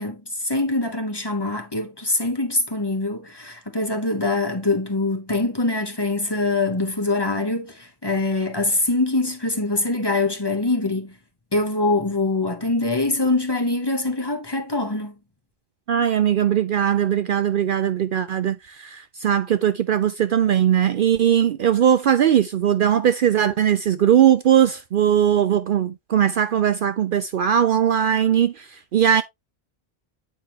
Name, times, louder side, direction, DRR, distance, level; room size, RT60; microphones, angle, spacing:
voice 1, 0.0-11.1 11.5-15.1, left 2 dB, 25° left, 1.2 m, -24 dB
voice 2, 15.9-29.2, right 9 dB, 60° right, 0.6 m, -19 dB
8.7 x 5.0 x 2.8 m
omnidirectional pair, 1.1 m